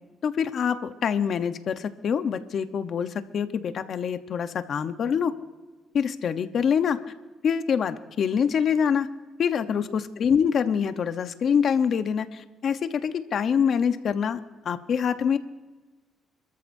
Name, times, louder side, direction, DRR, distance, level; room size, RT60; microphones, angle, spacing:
voice 1, 0.2-5.3 5.9-7.0 7.4-9.1 9.4-14.4 14.6-15.4, left 7 dB, 60° left, 10 dB, 0.9 m, -25 dB
28.0 x 13.5 x 2.7 m, 1.2 s
cardioid pair, 90°, 0 cm